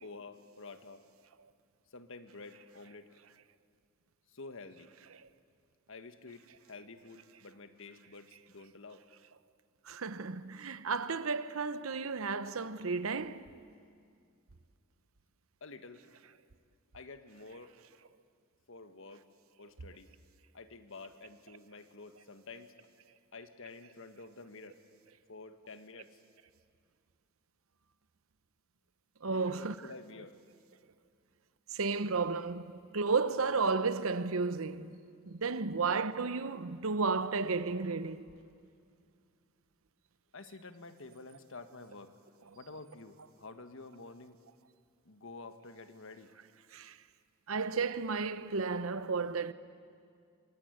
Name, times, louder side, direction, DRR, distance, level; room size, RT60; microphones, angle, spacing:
voice 1, 0.0-1.0 1.9-3.1 4.3-4.9 5.9-9.0 15.6-16.0 16.9-17.7 18.7-19.2 19.6-20.1 20.5-22.7 23.3-24.8 25.3-26.2 29.3-30.4 40.3-42.2 42.5-44.4 45.0-46.3, left 3 dB, 65° left, 1.5 m, -49 dB
voice 2, 9.8-13.5 29.2-29.8 31.7-35.0 35.3-38.2 46.7-47.0 47.5-49.5, right 4 dB, 75° right, 0.9 m, -33 dB
26.0 x 22.0 x 9.1 m
head